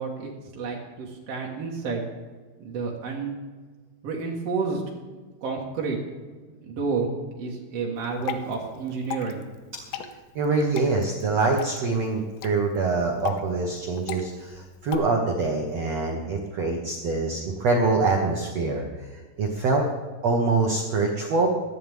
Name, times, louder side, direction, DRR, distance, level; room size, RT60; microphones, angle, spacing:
voice 1, 0.0-2.0 2.6-3.3 4.0-4.8 5.4-6.0 6.6-9.4, right 4 dB, 60° right, -2 dB, 1.6 m, -30 dB
Water / Drip, 8.0-15.0, left 9 dB, 80° left, 2.9 m, -38 dB
voice 2, 10.3-18.9 19.4-19.8 20.2-21.5, right 3 dB, 90° right, 1 dB, 1.4 m, -24 dB
17.5 x 13.0 x 3.6 m, 1.4 s
omnidirectional pair, 5.3 m